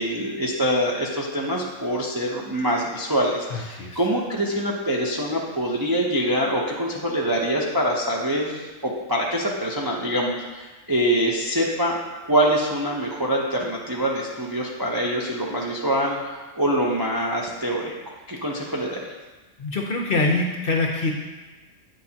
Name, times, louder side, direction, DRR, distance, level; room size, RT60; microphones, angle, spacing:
voice 1, 0.0-12.0 12.3-17.9 18.3-19.1, equal, 30° right, -3 dB, 0.4 m, -24 dB
voice 2, 3.5-4.0 19.6-21.1, left 2 dB, 55° left, 0 dB, 0.7 m, -24 dB
8.6 x 6.4 x 2.8 m, 1.3 s
omnidirectional pair, 1.5 m